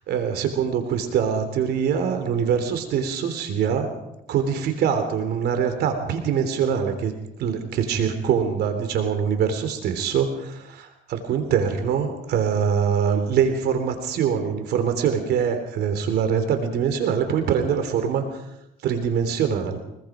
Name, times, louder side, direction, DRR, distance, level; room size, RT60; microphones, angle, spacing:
voice 1, 0.1-3.9 4.3-18.4 18.8-19.8, right 7 dB, 75° right, 7 dB, 3.4 m, -23 dB
25.0 x 22.0 x 5.1 m, 0.86 s
cardioid pair, 110°, 17 cm